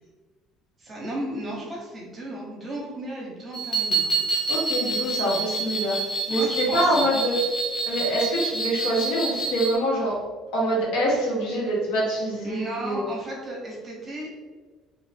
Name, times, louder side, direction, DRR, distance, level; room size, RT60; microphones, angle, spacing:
voice 1, 0.8-4.1 5.3-5.4 6.3-7.1 12.4-14.3, right 1 dB, 25° right, -3 dB, 0.7 m, -34 dB
sound 1, 3.5-9.8, right 3 dB, 25° left, 0.5 m, -27 dB
voice 2, 4.5-6.0 6.3-7.4 7.9-10.1 10.5-13.1, right 1 dB, 85° left, -4 dB, 1.1 m, -25 dB
2.5 x 2.4 x 3.3 m, 1.4 s
cardioid pair, 165°, 0 cm